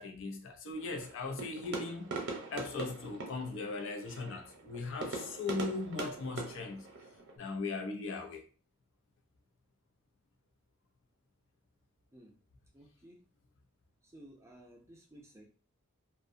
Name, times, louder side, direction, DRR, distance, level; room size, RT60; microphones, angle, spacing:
voice 1, 0.0-2.1 2.5-6.9 7.4-8.4, left 3 dB, 65° left, 0.5 m, -38 dB
sound 1, 0.7-7.4, right 3 dB, 60° right, 0.7 m, -43 dB
voice 2, 12.7-13.2 14.0-15.4, right 1 dB, 15° right, 0.4 m, -55 dB
2.6 x 2.1 x 2.5 m
head